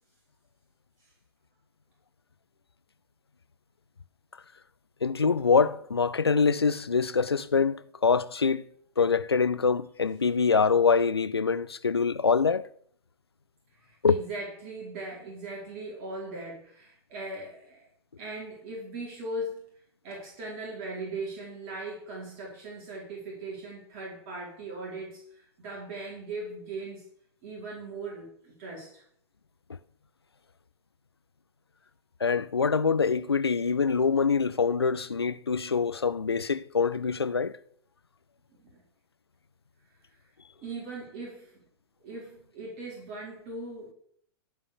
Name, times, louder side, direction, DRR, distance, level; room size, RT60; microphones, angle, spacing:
voice 1, 5.0-8.6 9.0-12.7 14.0-14.2 32.2-37.6, left 5 dB, 75° left, 0.7 m, -24 dB
voice 2, 13.8-17.9 18.2-19.7 20.0-27.0 27.4-29.0 38.6-38.8 40.6-41.6 42.0-43.9, right 2 dB, 40° right, 4.6 m, -39 dB
15.0 x 5.1 x 6.8 m
figure-of-eight pair, 100°, 13 cm